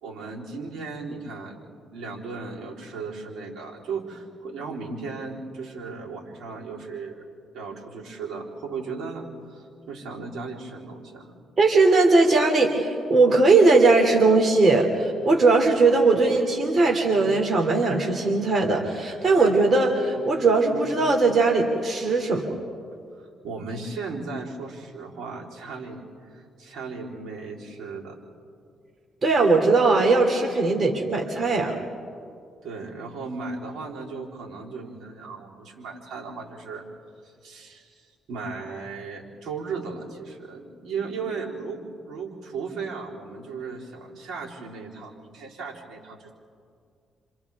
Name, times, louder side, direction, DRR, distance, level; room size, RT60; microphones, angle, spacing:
voice 1, 0.0-7.2 7.5-11.3 23.1-28.2 32.6-36.9 37.2-46.3, right 4 dB, 75° right, -3 dB, 3.8 m, -36 dB
voice 2, 11.6-22.4 29.2-31.8, right 3 dB, 40° right, 1 dB, 2.8 m, -19 dB
29.5 x 27.0 x 3.6 m, 2.3 s
cardioid pair, 90°, 0 cm